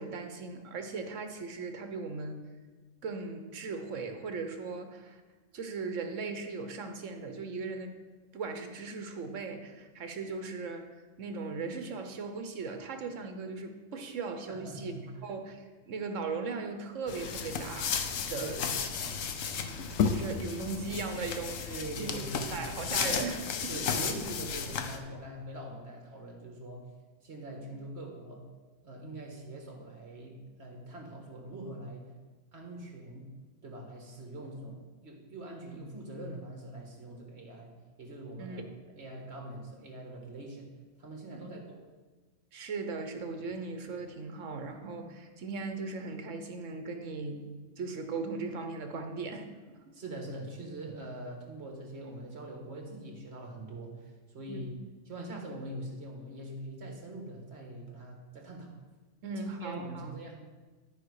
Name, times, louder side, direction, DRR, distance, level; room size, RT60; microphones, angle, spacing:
voice 1, 0.0-2.4 3.0-5.2 5.5-7.9 8.3-10.9 11.2-14.9 15.2-17.9 18.3-18.6 19.0-19.2 19.5-24.1 27.5-27.6 38.4-38.7 41.3-41.5 42.5-47.5 47.8-49.8 54.5-54.7 59.2-60.1, right 4 dB, 75° right, 6 dB, 1.3 m, -38 dB
voice 2, 14.5-15.3 18.4-18.6 21.7-23.1 23.7-26.9 27.2-28.4 28.8-32.1 32.5-33.3 33.6-37.7 38.0-38.6 38.9-40.7 41.0-41.8 49.9-54.8 55.1-58.7 59.6-60.4, right 1 dB, 55° right, 1 dB, 1.8 m, -43 dB
sound 1, 17.1-25.0, left 6 dB, 85° left, 1.1 m, -33 dB
12.5 x 5.2 x 4.8 m, 1.3 s
omnidirectional pair, 1.3 m